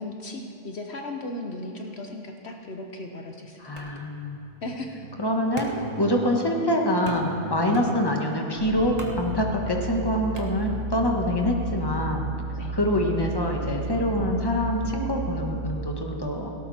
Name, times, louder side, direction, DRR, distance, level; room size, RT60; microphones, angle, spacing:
voice 1, 0.0-3.6 4.6-4.9 7.6-7.8 12.6-12.7, left 2 dB, 60° left, 3 dB, 1.2 m, -36 dB
voice 2, 3.6-4.4 5.2-5.7 6.0-12.3 12.7-16.5, left 1 dB, 20° left, 1 dB, 1.6 m, -25 dB
sound 1, 3.8-11.1, left 1 dB, 30° right, 1.5 m, -42 dB
sound 2, 8.6-15.6, right 2 dB, 55° right, 3.3 m, -33 dB
17.5 x 17.5 x 4.4 m, 2.7 s
omnidirectional pair, 1.2 m